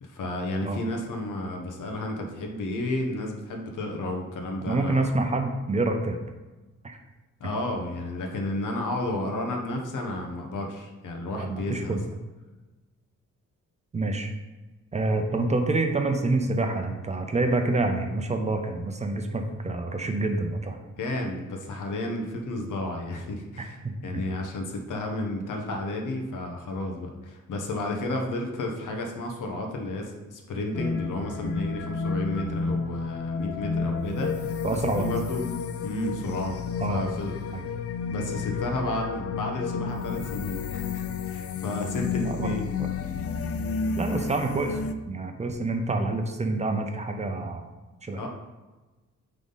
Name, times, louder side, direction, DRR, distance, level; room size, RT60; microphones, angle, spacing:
voice 1, 0.0-5.1 7.4-12.0 21.0-23.8 24.0-35.4 35.8-37.3 38.1-42.8 43.0-43.1 48.2-48.3, left 1 dB, 85° left, 2 dB, 1.2 m, -32 dB
voice 2, 4.7-6.2 6.8-7.0 11.3-12.0 13.9-14.3 14.9-20.8 23.6-23.9 34.6-35.0 36.8-37.1 37.5-37.6 42.2-42.9 44.0-44.8 45.1-47.6 48.0-48.2, right 2 dB, 20° right, 5 dB, 0.5 m, -27 dB
sound 1, 30.7-44.9, left 5 dB, 50° left, 0.4 m, -31 dB
8.9 x 3.7 x 4.0 m, 1.2 s
wide cardioid pair, 160°, 30 cm